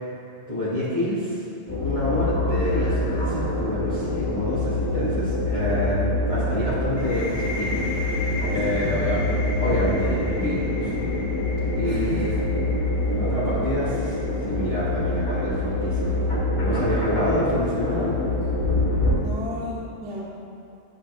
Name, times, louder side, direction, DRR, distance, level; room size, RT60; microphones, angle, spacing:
voice 1, 0.5-1.4 1.8-8.1 8.4-9.2 9.6-10.9 11.7-12.5 13.1-18.2, left 1 dB, 55° left, -12 dB, 2.0 m, -28 dB
sound 1, 1.7-19.2, left 1 dB, 30° left, 1.2 m, -25 dB
sound 2, 7.0-14.5, left 2 dB, 90° left, 1.2 m, -37 dB
voice 2, 8.7-9.1 11.8-12.4 19.1-20.2, left 1 dB, 60° right, -8 dB, 1.4 m, -34 dB
10.0 x 5.7 x 2.2 m, 2.6 s
omnidirectional pair, 1.3 m